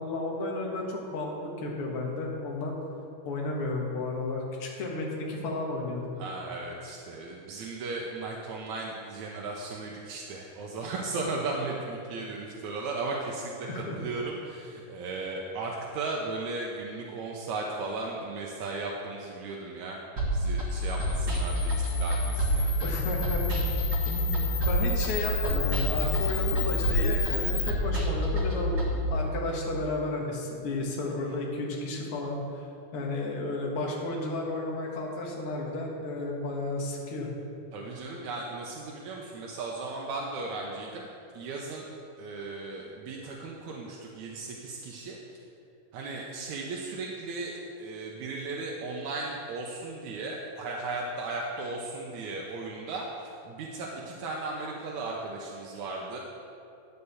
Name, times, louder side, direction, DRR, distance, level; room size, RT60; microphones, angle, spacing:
voice 1, 0.0-2.8 3.3-6.1 13.7-14.0 22.8-23.6 24.1-32.7 32.9-37.3, left 2 dB, 55° left, -1 dB, 1.8 m, -33 dB
voice 2, 6.2-13.7 14.0-20.0 20.3-22.9 37.7-41.1 41.3-41.8 42.2-45.2 45.9-56.2, right 3 dB, 75° right, -1 dB, 1.7 m, -36 dB
sound 1, 20.2-29.0, equal, 45° right, 1.3 m, -28 dB
Camera, 20.7-27.7, left 9 dB, 70° left, 2.4 m, -35 dB
9.8 x 6.7 x 7.0 m, 2.6 s
omnidirectional pair, 4.3 m